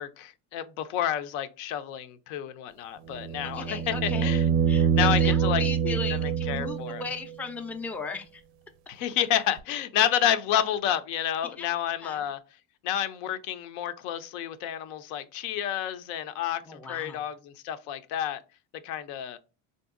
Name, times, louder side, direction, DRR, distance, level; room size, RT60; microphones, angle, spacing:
voice 1, 0.0-4.5 5.0-7.0 8.9-12.4 12.8-18.4 18.8-19.4, left 10 dB, 85° left, 0.6 m, -30 dB
sound 1, 3.1-7.2 9.6-9.7, right 7 dB, 85° right, 0.5 m, -25 dB
voice 2, 3.4-4.3 4.7-8.4 11.6-12.3 16.7-17.2, left 4 dB, 5° left, 0.3 m, -37 dB
3.7 x 2.6 x 2.4 m
cardioid pair, 115°, 36 cm